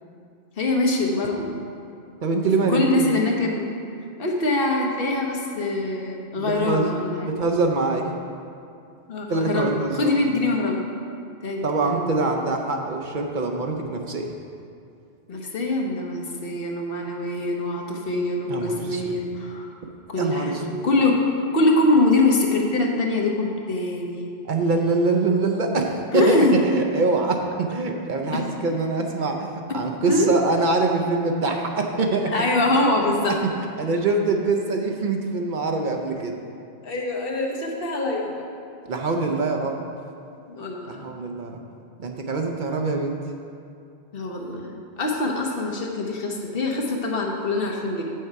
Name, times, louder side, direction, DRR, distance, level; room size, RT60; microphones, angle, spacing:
voice 1, 0.6-1.6 2.7-3.7 4.2-7.3 9.1-10.8 11.4-12.4 15.3-19.7 20.1-21.2 21.5-24.3 26.1-26.6 28.3-28.4 30.1-30.3 32.3-33.4 36.8-38.4 40.5-41.1 44.1-48.0, left 2 dB, 65° left, 0 dB, 1.1 m, -24 dB
voice 2, 2.2-3.1 6.4-6.9 7.2-8.1 9.3-10.1 11.6-14.3 18.5-19.1 20.2-20.8 24.4-32.7 33.8-36.4 38.9-39.8 40.9-41.6 42.0-43.1, right 3 dB, 55° right, 2 dB, 0.7 m, -24 dB
7.7 x 6.5 x 4.6 m, 2.5 s
omnidirectional pair, 1.0 m